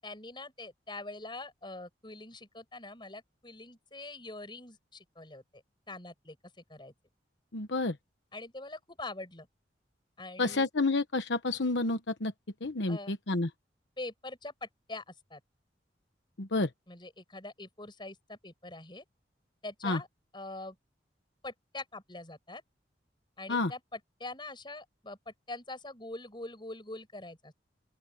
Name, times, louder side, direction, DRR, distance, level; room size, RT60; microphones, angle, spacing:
voice 1, 0.0-6.4 6.7-6.9 8.3-9.5 10.2-10.7 12.9-13.1 14.0-15.4 16.9-19.0 19.6-20.1 20.3-20.8 21.4-22.6 23.4-27.5, left 2 dB, 25° left, 8.0 m, -44 dB
voice 2, 7.5-8.0 10.4-12.3 12.6-13.5 16.4-16.7 19.8-20.0 23.5-23.7, left 3 dB, 80° left, 1.1 m, -29 dB
open air
head